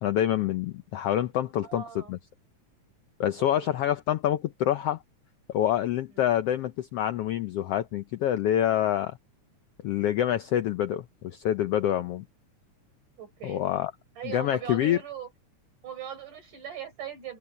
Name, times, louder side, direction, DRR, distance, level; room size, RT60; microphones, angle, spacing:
voice 1, 0.0-2.2 3.2-5.0 5.5-9.2 9.8-12.2 13.4-13.9 14.2-15.0, left 11 dB, 80° left, 1.4 m, -26 dB
voice 2, 1.6-2.1 3.4-3.8 6.1-6.2 13.2-13.6 14.2-15.3 15.8-17.4, right 9 dB, 80° right, 6.6 m, -40 dB
omnidirectional pair, 3.5 m